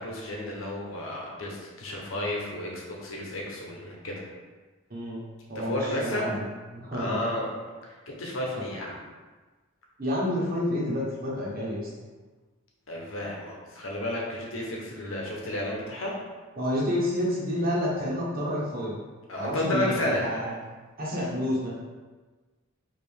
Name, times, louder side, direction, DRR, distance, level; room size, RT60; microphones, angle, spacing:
voice 1, 0.0-4.3 5.5-6.4 6.9-7.5 7.8-9.0 12.9-16.2 19.3-20.3, left 1 dB, 80° left, -2 dB, 1.0 m, -32 dB
voice 2, 4.9-5.2 5.5-6.5 6.7-7.2 10.0-11.9 16.6-19.0 19.4-20.5 21.0-21.7, left 1 dB, 50° right, -5 dB, 1.3 m, -29 dB
4.9 x 2.9 x 3.5 m, 1.3 s
head